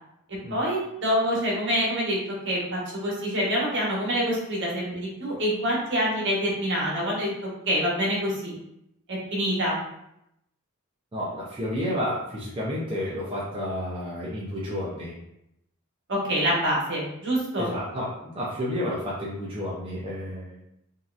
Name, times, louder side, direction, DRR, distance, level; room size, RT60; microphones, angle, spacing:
voice 1, 0.5-2.2 2.4-7.3 7.7-8.5 9.1-9.7 16.1-17.7, equal, 55° right, -4 dB, 1.1 m, -26 dB
voice 2, 11.1-15.2 17.6-20.5, left 1 dB, 25° right, -6 dB, 0.5 m, -31 dB
3.0 x 2.7 x 2.4 m, 0.80 s
head